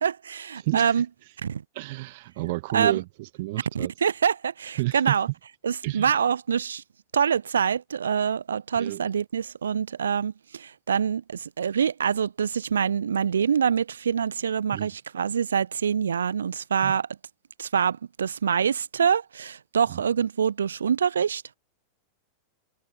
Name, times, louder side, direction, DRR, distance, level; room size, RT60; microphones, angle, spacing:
voice 1, 0.0-1.1 1.4-1.6 2.7-3.0 3.7-5.3 5.6-6.8 7.1-17.1 17.6-21.4, right 7 dB, 70° right, 0.5 m, -25 dB
voice 2, 0.6-0.9 1.7-3.9 4.8-5.1 5.8-6.1 8.7-9.0 14.7-14.9 16.8-16.9 19.9-20.1, right 21 dB, 50° right, 1.5 m, -30 dB
figure-of-eight pair, 90°, 0 cm